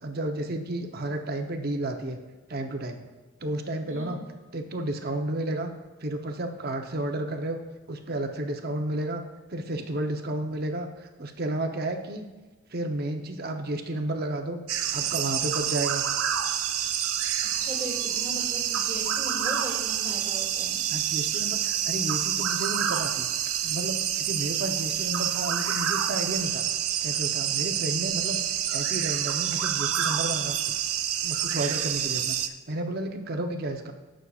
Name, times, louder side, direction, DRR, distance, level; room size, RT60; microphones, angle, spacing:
voice 1, 0.0-2.2 2.5-3.0 3.4-4.2 4.5-5.7 6.0-7.6 7.9-9.2 9.5-12.3 12.7-14.6 14.9-16.0 20.9-23.3 23.6-26.7 27.0-28.4 28.7-30.6 31.2-32.4 32.7-33.9, right 1 dB, 45° right, 5 dB, 0.8 m, -32 dB
sound 1, 14.7-32.5, right 10 dB, 85° right, 0.6 m, -28 dB
voice 2, 17.4-20.8, right 1 dB, 15° right, -3 dB, 2.3 m, -38 dB
18.0 x 6.3 x 2.4 m, 1.3 s
head